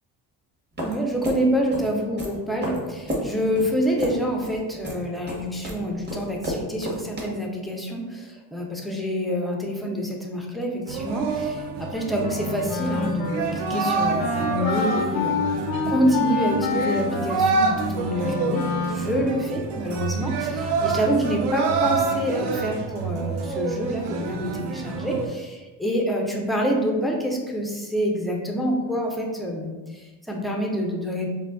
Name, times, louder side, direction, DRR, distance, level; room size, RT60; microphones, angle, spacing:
voice 1, 0.8-15.5 15.9-31.3, equal, ahead, 0 dB, 0.3 m, -27 dB
sound 1, 0.8-7.2, equal, 20° right, 0.8 m, -32 dB
sound 2, 10.9-25.3, right 4 dB, 55° right, 0.5 m, -27 dB
Wind instrument woodwind instrument, 12.2-19.5, left 4 dB, 80° left, 0.6 m, -28 dB
2.3 x 2.1 x 3.4 m, 1.2 s
supercardioid pair, 65°, 50 cm